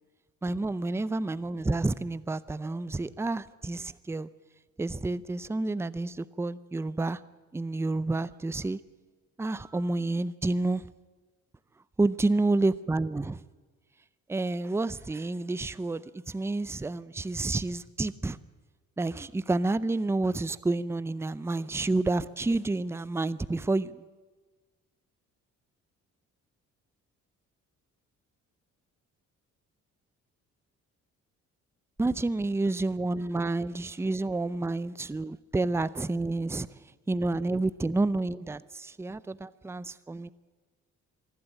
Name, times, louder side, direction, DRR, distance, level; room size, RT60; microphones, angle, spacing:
voice 1, 0.4-4.3 4.8-7.2 7.5-8.8 9.4-10.9 12.0-13.4 14.3-18.4 19.0-24.0 32.0-36.8 37.1-40.3, right 2 dB, 10° right, 17 dB, 0.5 m, -29 dB
24.5 x 12.0 x 9.0 m, 1.3 s
cardioid pair, 90°, 30 cm